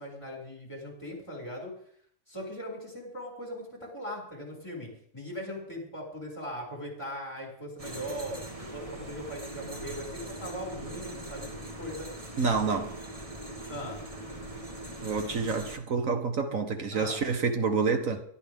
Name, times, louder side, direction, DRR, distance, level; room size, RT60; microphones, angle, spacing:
voice 1, 0.0-1.7 2.3-12.1 12.5-12.8 13.7-14.0 16.9-17.2, equal, 20° left, 6.6 m, -39 dB
sound 1, 7.8-15.8, right 1 dB, 25° right, 1.6 m, -41 dB
voice 2, 12.4-12.8 15.0-18.2, right 4 dB, 90° right, 1.9 m, -28 dB
23.0 x 12.5 x 3.7 m
omnidirectional pair, 1.4 m